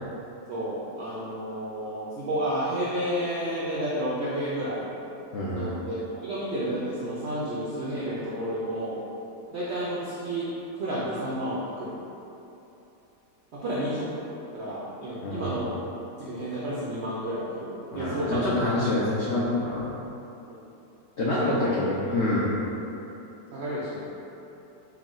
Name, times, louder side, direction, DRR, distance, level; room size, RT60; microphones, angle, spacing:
voice 1, 0.5-4.8 5.5-9.0 9.5-10.5 10.8-11.9 13.6-14.1 14.5-15.8 16.2-18.4 20.5-20.6 21.4-21.7 23.5-24.1, right 1 dB, 80° right, -7 dB, 0.6 m, -31 dB
voice 2, 5.3-5.7 15.2-15.6 17.9-19.8 21.2-22.5, left 2 dB, 85° left, -6 dB, 0.6 m, -26 dB
4.5 x 2.1 x 3.7 m, 2.9 s
omnidirectional pair, 1.8 m